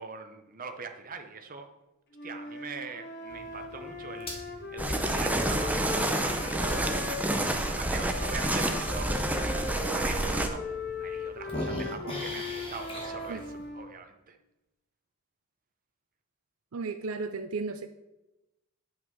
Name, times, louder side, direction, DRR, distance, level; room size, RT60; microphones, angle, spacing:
voice 1, 0.0-1.7 2.2-7.0 7.5-9.1 9.4-13.4 13.7-14.4, right 5 dB, 40° right, 6 dB, 0.9 m, -42 dB
Wind instrument woodwind instrument, 2.1-7.6 8.1-13.9, left 3 dB, 50° left, 1.3 m, -39 dB
sound 1, 3.3-9.7 10.3-10.4 10.7-13.7, left 1 dB, 25° left, 1.7 m, -43 dB
sound 2, 4.8-10.5, right 1 dB, 5° right, 0.7 m, -28 dB
voice 2, 13.3-13.6 16.7-17.9, right 4 dB, 75° right, 9 dB, 0.5 m, -35 dB
9.6 x 5.8 x 5.4 m, 0.97 s
head